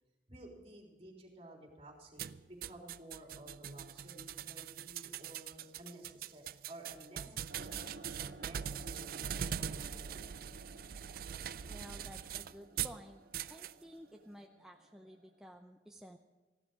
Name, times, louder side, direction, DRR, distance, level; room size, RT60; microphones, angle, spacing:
voice 1, 0.3-7.7 8.4-10.4, right 1 dB, 35° right, -1 dB, 3.6 m, -54 dB
sound 1, 2.2-13.0 13.3-13.7, right 9 dB, 55° right, 0.4 m, -42 dB
sound 2, 7.5-15.4, right 2 dB, 85° right, 1.9 m, -54 dB
voice 2, 11.7-13.2 13.5-16.2, equal, 5° right, 2 dB, 0.6 m, -53 dB
15.5 x 12.0 x 5.0 m, 1.3 s
head